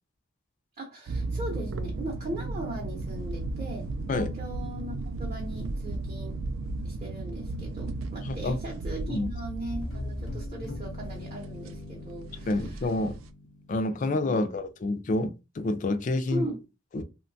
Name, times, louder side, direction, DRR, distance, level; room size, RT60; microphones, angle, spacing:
voice 1, 0.8-3.9 4.1-6.4 6.8-12.9 13.9-14.5 16.3-16.6, right 1 dB, 35° right, 0.7 m, -39 dB
sound 1, 1.1-13.3, right 2 dB, 85° right, 0.3 m, -35 dB
voice 2, 8.2-8.6 9.1-9.3 12.5-13.2 13.7-16.5 16.9-17.0, left 2 dB, 40° left, 0.3 m, -28 dB
sound 2, 9.7-14.5, left 2 dB, 75° left, 0.6 m, -41 dB
2.9 x 2.2 x 2.6 m
head